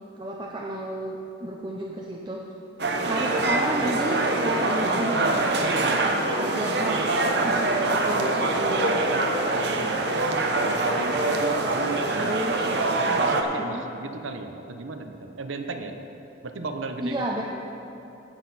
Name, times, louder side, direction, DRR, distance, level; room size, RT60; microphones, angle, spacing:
voice 1, 0.1-2.4 3.0-9.0 12.2-12.7 13.6-13.8 17.0-17.4, right 1 dB, 25° right, -2 dB, 0.6 m, -32 dB
sound 1, 2.8-13.4, right 2 dB, 60° right, 0.8 m, -24 dB
voice 2, 10.1-12.4 12.7-15.9 16.4-17.2, right 3 dB, 90° right, 6 dB, 0.8 m, -36 dB
16.0 x 6.3 x 4.1 m, 2.9 s
head